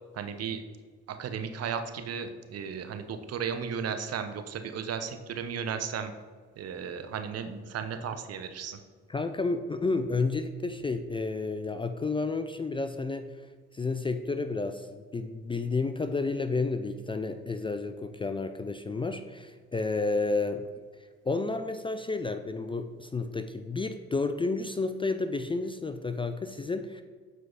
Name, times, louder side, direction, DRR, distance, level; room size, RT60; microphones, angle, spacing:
voice 1, 0.1-0.6 1.1-6.1 6.6-8.8, right 7 dB, 50° right, 8 dB, 0.8 m, -35 dB
voice 2, 9.1-13.4 13.7-20.7 21.2-27.0, left 3 dB, 15° left, 9 dB, 0.4 m, -31 dB
8.1 x 4.6 x 3.9 m, 1.5 s
hypercardioid pair, 65°, 32 cm